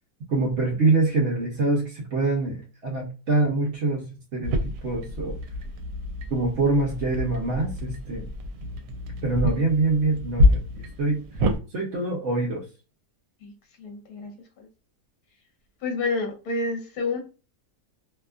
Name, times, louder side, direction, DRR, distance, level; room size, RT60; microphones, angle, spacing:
voice 1, 0.3-5.4 6.3-8.3 9.2-11.5 11.7-12.6, right 3 dB, 65° right, -1 dB, 0.7 m, -25 dB
sound 1, 4.4-11.6, left 1 dB, 80° right, 1.1 m, -27 dB
voice 2, 13.8-14.3 14.6-14.7 15.8-17.2, left 3 dB, 65° left, 2 dB, 1.1 m, -29 dB
2.7 x 2.3 x 2.3 m, 0.32 s
omnidirectional pair, 1.7 m